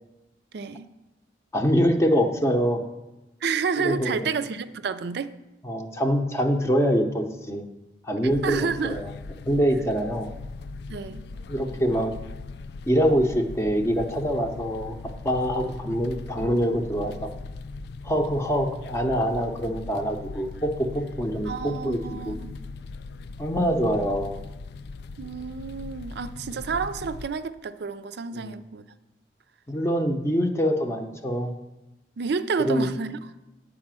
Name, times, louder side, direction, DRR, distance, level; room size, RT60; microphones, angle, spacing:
voice 1, 0.5-0.9 3.4-5.3 8.4-9.0 10.9-11.2 21.4-22.5 25.2-28.8 32.2-33.2, right 5 dB, 65° right, 0.5 m, -30 dB
voice 2, 1.5-2.8 3.8-4.3 5.6-7.7 8.1-9.1 9.5-10.3 11.5-12.1 12.9-14.9 15.2-17.3 18.0-22.0 22.3-22.4 23.4-24.4 28.3-28.6 29.7-31.5 32.6-32.9, equal, 15° left, 0.7 m, -24 dB
sound 1, 8.2-27.3, left 3 dB, 65° left, 0.4 m, -39 dB
9.6 x 4.9 x 7.4 m
head